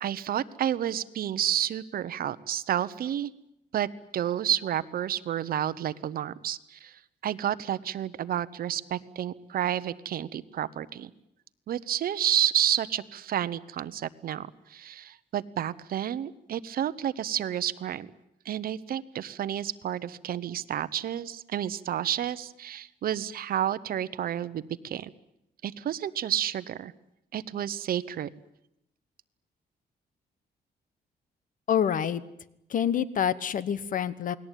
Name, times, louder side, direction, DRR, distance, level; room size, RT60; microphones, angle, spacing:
voice 1, 0.0-3.3 3.7-11.1 11.7-18.1 18.4-25.1 25.6-26.9 27.3-28.3, right 10 dB, 60° right, 16 dB, 1.1 m, -30 dB
voice 2, 31.7-32.2 32.7-34.3, left 9 dB, 50° left, 17 dB, 1.2 m, -27 dB
28.5 x 20.0 x 9.2 m, 0.83 s
cardioid pair, 145°, 17 cm